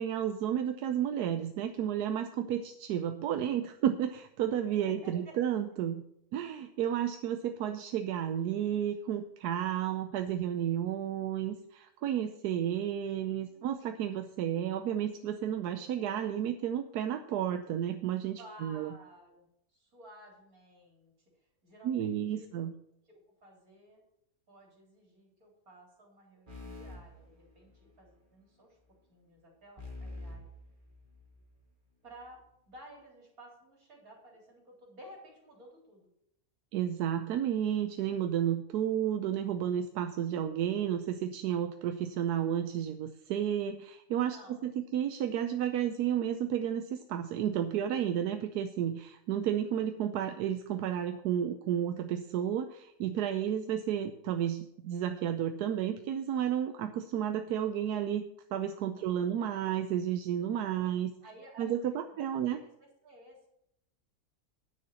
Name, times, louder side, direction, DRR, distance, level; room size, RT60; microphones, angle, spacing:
voice 1, 0.0-6.0 6.3-18.9 21.8-22.7 36.7-58.2 58.5-61.1 61.6-62.6, right 10 dB, 90° right, 8 dB, 1.2 m, -32 dB
voice 2, 4.8-5.4 13.4-14.0 18.4-19.5 19.7-21.1 21.6-22.5 23.1-24.0 24.5-27.7 28.0-28.8 29.1-30.5 32.0-36.1 44.2-44.7 58.9-59.3 60.8-62.7 63.0-63.5, right 1 dB, 65° right, -1 dB, 4.0 m, -54 dB
sound 1, 26.5-28.1 29.8-31.5, left 2 dB, 30° right, 2.8 m, -46 dB
9.8 x 6.5 x 7.0 m, 0.77 s
omnidirectional pair, 1.6 m